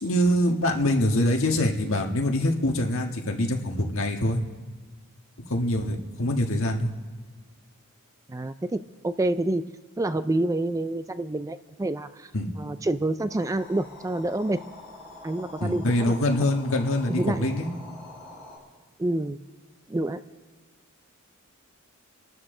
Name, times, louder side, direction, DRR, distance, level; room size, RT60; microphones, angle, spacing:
voice 1, 0.0-4.4 5.5-6.9 12.3-12.5 15.6-17.7, left 1 dB, 65° left, 2 dB, 1.7 m, -24 dB
voice 2, 8.3-9.6 10.0-12.3 12.6-14.6 15.2-16.1 16.4-16.5 17.1-17.4 19.0-19.4 19.9-20.2, right 2 dB, 15° right, 11 dB, 0.4 m, -28 dB
sound 1, 13.3-18.6, left 2 dB, 5° left, 5.7 m, -45 dB
29.0 x 12.5 x 3.8 m, 1.4 s
head